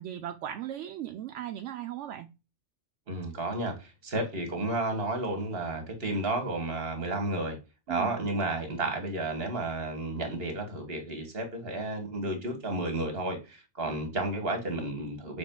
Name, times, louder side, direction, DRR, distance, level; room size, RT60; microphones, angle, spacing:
voice 1, 0.0-2.3 7.9-8.2, right 11 dB, 80° right, 0.9 m, -37 dB
voice 2, 3.1-7.6 7.9-15.4, right 2 dB, 55° right, 1.6 m, -32 dB
6.1 x 3.5 x 2.2 m
omnidirectional pair, 1.2 m